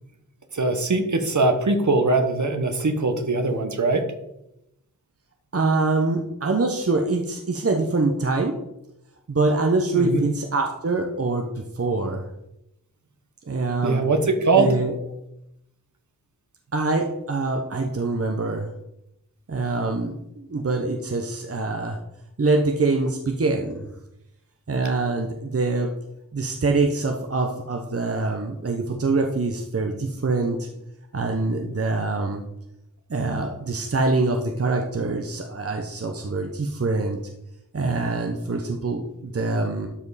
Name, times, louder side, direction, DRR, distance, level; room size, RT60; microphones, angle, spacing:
voice 1, 0.5-4.0 9.9-10.3 13.8-14.7, right 3 dB, 60° right, 7 dB, 1.3 m, -21 dB
voice 2, 5.5-8.6 9.3-12.2 13.5-14.0 14.6-14.9 16.7-18.7 19.5-22.0 22.4-23.9 24.7-25.9 26.3-30.7 31.1-32.4 33.1-37.2 37.7-39.9, right 3 dB, 45° right, 3 dB, 1.0 m, -24 dB
12.5 x 5.0 x 4.1 m, 0.86 s
cardioid pair, 55°, 33 cm